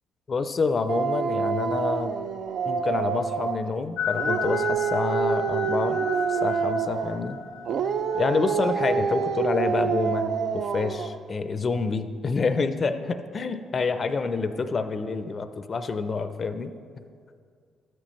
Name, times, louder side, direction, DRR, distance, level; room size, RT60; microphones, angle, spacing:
voice 1, 0.3-2.2 2.7-6.0 6.3-7.4 8.1-16.7, left 4 dB, 40° left, 10 dB, 0.4 m, -27 dB
Speech, 0.6-0.7 5.9-6.5 7.7-8.0, right 2 dB, 40° right, 1.2 m, -46 dB
Dog, 0.9-3.7 4.1-7.2 7.6-11.2, right 6 dB, 65° right, 0.4 m, -27 dB
sound 1, 4.0-9.3, left 7 dB, 85° left, 0.6 m, -34 dB
12.5 x 8.8 x 3.1 m, 2.2 s
cardioid pair, 90°, 0 cm